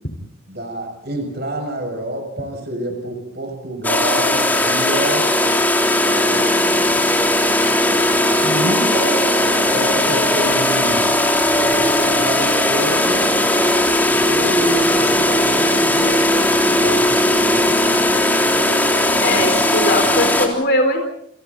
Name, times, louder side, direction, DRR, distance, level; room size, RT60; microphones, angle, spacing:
voice 1, 0.5-5.3 6.0-7.1 8.1-9.3 9.7-11.1 11.5-13.3 14.1-17.1 17.4-17.8 19.3-19.4, right 1 dB, 50° right, 4 dB, 6.5 m, -28 dB
sound 1, 3.8-20.5, left 1 dB, 10° left, 3.4 m, -17 dB
voice 2, 19.2-21.1, left 1 dB, 55° left, 4 dB, 4.3 m, -20 dB
29.5 x 29.0 x 4.1 m, 0.70 s
head